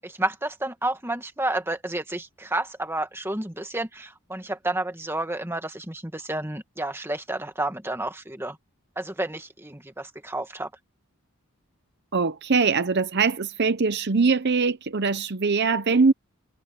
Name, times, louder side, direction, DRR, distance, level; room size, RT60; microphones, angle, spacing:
voice 1, 0.0-8.6 8.9-10.7, right 2 dB, 10° right, 1.7 m, -30 dB
voice 2, 12.1-16.1, right 4 dB, 50° right, 0.7 m, -22 dB
head